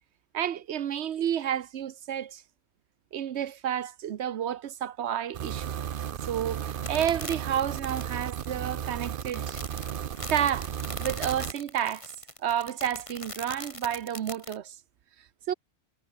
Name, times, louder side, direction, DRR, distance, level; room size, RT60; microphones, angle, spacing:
voice 1, 0.3-2.4 3.1-5.7 6.2-9.6 10.3-10.7 11.0-12.1 12.4-14.8 15.5-15.6, right 10 dB, 80° right, 1.1 m, -30 dB
sound 1, 5.3-11.5, right 9 dB, 55° right, 0.8 m, -34 dB
sound 2, 6.7-14.6, left 1 dB, 30° left, 6.1 m, -41 dB
omnidirectional pair, 1.1 m